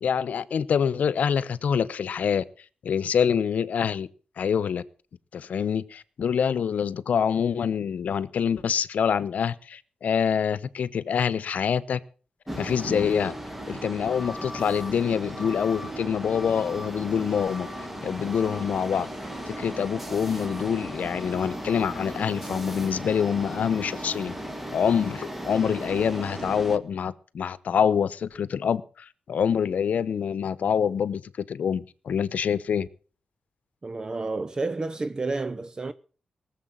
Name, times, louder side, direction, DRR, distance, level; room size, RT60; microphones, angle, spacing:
voice 1, 0.0-2.4 2.8-4.1 4.4-4.8 5.3-12.0 12.6-13.3 13.7-17.7 18.0-19.1 19.5-24.3 24.7-32.9, left 7 dB, 75° left, 0.9 m, -26 dB
sound 1, 12.5-26.8, equal, 10° right, 1.7 m, -36 dB
voice 2, 33.8-35.9, right 3 dB, 30° right, 0.7 m, -30 dB
19.5 x 7.4 x 7.4 m
wide cardioid pair, 115°, 3 cm